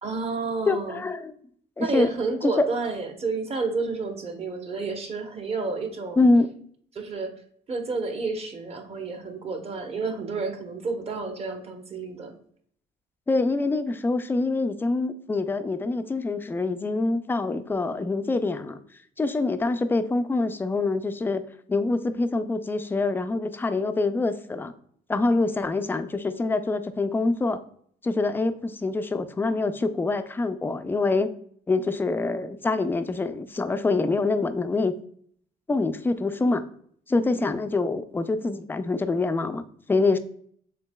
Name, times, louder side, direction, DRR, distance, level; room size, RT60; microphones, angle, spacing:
voice 1, 0.0-1.0 1.8-6.2 6.9-7.3 7.7-12.3 37.1-37.4, right 4 dB, 35° right, 5 dB, 0.8 m, -30 dB
voice 2, 0.7-1.3 1.8-2.1 2.4-2.7 6.2-6.5 13.3-18.8 19.2-21.4 21.7-24.7 25.1-27.6 28.0-31.3 31.7-34.9 35.7-36.6 37.1-40.2, left 3 dB, 10° left, 10 dB, 0.3 m, -25 dB
7.0 x 2.8 x 2.2 m, 0.62 s
cardioid pair, 110°, 17 cm